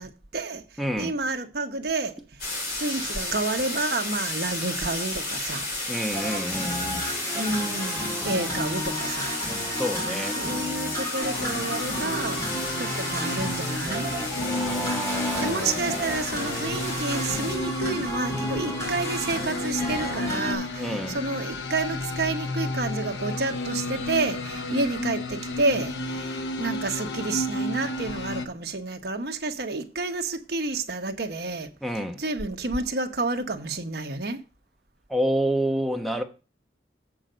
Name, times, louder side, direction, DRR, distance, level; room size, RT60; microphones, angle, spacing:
voice 1, 0.0-0.6 1.0-2.1 2.8-5.7 7.3-9.3 10.4-12.5 12.8-14.1 15.4-31.7 32.2-34.4, right 3 dB, 65° right, 1.1 m, -30 dB
voice 2, 0.8-1.2 5.9-7.1 9.7-10.4 14.5-15.8 20.7-21.2 31.8-32.2 35.1-36.2, equal, ahead, 1.1 m, -29 dB
sound 1, 2.4-17.6, left 2 dB, 60° left, 4.4 m, -33 dB
sound 2, 6.1-20.6, equal, 15° left, 2.6 m, -33 dB
sound 3, 11.2-28.5, left 2 dB, 90° left, 0.8 m, -32 dB
7.8 x 6.1 x 5.1 m
head